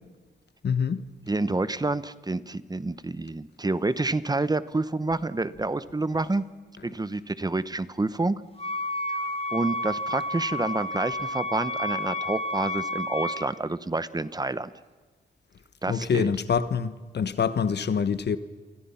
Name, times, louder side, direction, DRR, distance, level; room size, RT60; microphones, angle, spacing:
voice 1, 0.6-1.1 15.9-18.4, left 6 dB, 70° left, 1.3 m, -25 dB
voice 2, 1.3-6.4 6.8-8.4 9.5-14.7 15.8-16.3, right 2 dB, 20° right, 1.0 m, -28 dB
Wind instrument woodwind instrument, 8.6-13.5, left 1 dB, 30° left, 2.0 m, -31 dB
29.5 x 25.0 x 5.7 m
wide cardioid pair, 100°, 18 cm